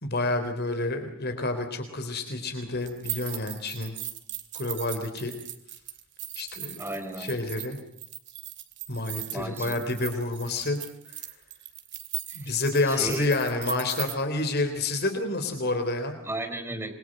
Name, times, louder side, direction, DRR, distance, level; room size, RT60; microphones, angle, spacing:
voice 1, 0.0-3.9 4.5-5.3 6.4-6.8 7.2-7.8 8.9-10.8 11.1-11.2 12.4-16.1, left 2 dB, 50° left, 7 dB, 3.6 m, -29 dB
sound 1, 2.8-14.1, right 14 dB, 55° right, 2.7 m, -39 dB
voice 2, 6.8-7.4 9.3-9.7 12.3-12.5 12.8-13.3 16.2-17.0, right 1 dB, 10° right, 6 dB, 3.9 m, -35 dB
27.0 x 23.0 x 7.8 m, 0.71 s
head